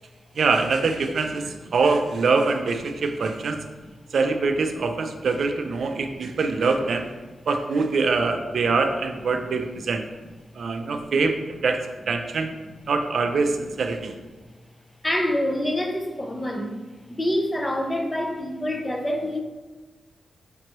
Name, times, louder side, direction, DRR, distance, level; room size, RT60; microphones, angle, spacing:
voice 1, 0.4-3.6 4.1-7.1 7.5-10.0 10.6-12.5 12.9-14.1, right 4 dB, 60° right, 6 dB, 0.3 m, -24 dB
voice 2, 15.0-16.8 17.1-19.4, left 1 dB, 15° left, 3 dB, 0.4 m, -26 dB
5.2 x 2.9 x 3.0 m, 1.3 s
wide cardioid pair, 165°, 0 cm